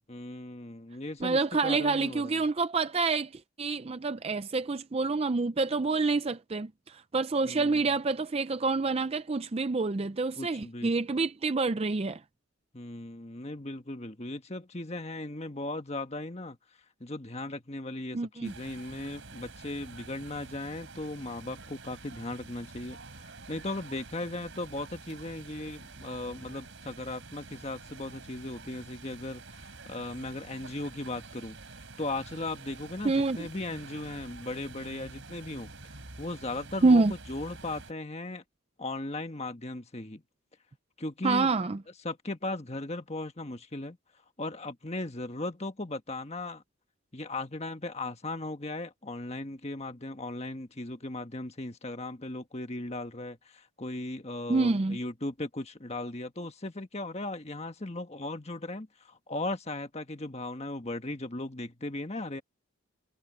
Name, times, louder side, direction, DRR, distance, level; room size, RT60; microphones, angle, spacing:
voice 1, 0.1-2.4 7.4-7.8 10.3-10.9 12.7-16.6 17.0-31.6 32.0-35.7 36.2-38.4 38.8-40.2 41.0-41.5 42.0-44.0 44.4-46.6 47.1-62.4, left 2 dB, 30° left, 1.5 m, -37 dB
voice 2, 1.2-12.2 18.1-18.5 33.0-33.4 36.8-37.1 41.2-41.8 54.5-55.0, right 3 dB, 25° right, 0.4 m, -27 dB
sound 1, 18.4-37.9, right 3 dB, 60° right, 3.6 m, -48 dB
head